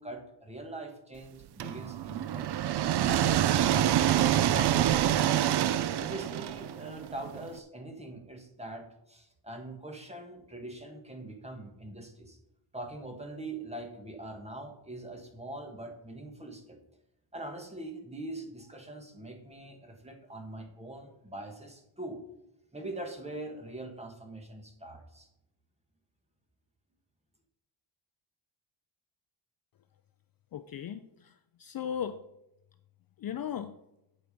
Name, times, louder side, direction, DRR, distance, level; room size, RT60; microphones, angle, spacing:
voice 1, 0.0-2.6 6.0-12.4 12.7-16.8 17.3-22.2 22.7-25.3, right 2 dB, 15° right, 4 dB, 1.3 m, -43 dB
sound 1, 1.6-7.5, right 11 dB, 55° right, 0.5 m, -26 dB
voice 2, 30.5-32.2 33.2-33.7, left 8 dB, 45° left, 9 dB, 0.5 m, -37 dB
8.5 x 7.8 x 5.1 m, 0.84 s
wide cardioid pair, 170°, 49 cm